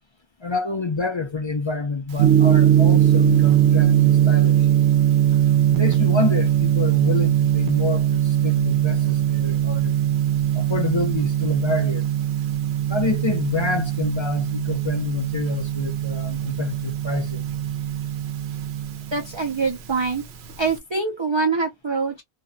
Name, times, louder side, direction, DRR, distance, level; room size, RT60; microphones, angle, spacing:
voice 1, 0.4-4.5 5.7-9.9 10.5-12.0 12.9-17.4, left 4 dB, 40° left, 0.4 m, -27 dB
Gong, 2.1-20.8, right 11 dB, 85° right, 0.9 m, -20 dB
voice 2, 19.1-20.2 20.6-22.2, right 4 dB, 40° right, 0.4 m, -24 dB
2.5 x 2.1 x 2.5 m
omnidirectional pair, 1.0 m